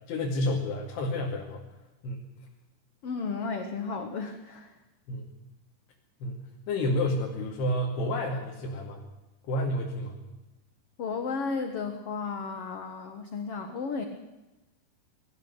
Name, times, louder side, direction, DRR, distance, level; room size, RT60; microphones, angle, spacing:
voice 1, 0.1-1.6 2.0-2.2 5.1-5.3 6.2-9.0 9.5-10.2, left 1 dB, 90° left, -1 dB, 4.5 m, -30 dB
voice 2, 3.0-4.7 11.0-14.0, left 4 dB, 55° left, 6 dB, 1.7 m, -33 dB
23.0 x 15.0 x 8.2 m, 1.1 s
omnidirectional pair, 4.6 m